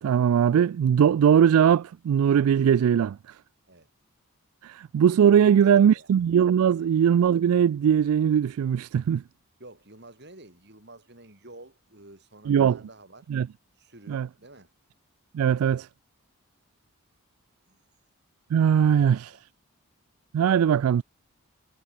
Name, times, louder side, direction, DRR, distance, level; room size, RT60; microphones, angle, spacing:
voice 1, 0.0-3.2 4.6-9.2 12.5-12.8 13.3-13.5 14.1-14.3 15.3-15.9 18.5-19.3 20.3-21.0, right 8 dB, 75° right, 0.3 m, -20 dB
voice 2, 5.4-6.1 6.7-6.9 9.6-13.3 13.8-14.7 17.7-17.8 18.7-19.4, right 2 dB, 50° right, 4.6 m, -50 dB
head